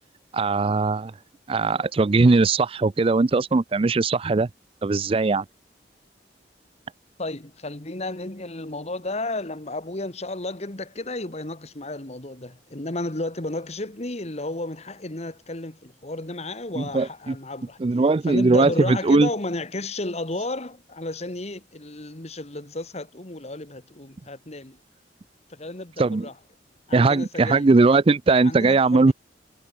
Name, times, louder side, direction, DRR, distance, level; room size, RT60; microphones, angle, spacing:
voice 1, 0.3-1.1 1.5-4.5 4.8-5.4 16.8-17.4 17.8-19.3 26.0-26.3 26.9-29.1, right 3 dB, 30° right, 0.4 m, -19 dB
voice 2, 7.2-17.8 18.3-24.8 25.5-26.3 26.9-27.7 28.4-29.1, left 2 dB, 35° left, 1.9 m, -33 dB
head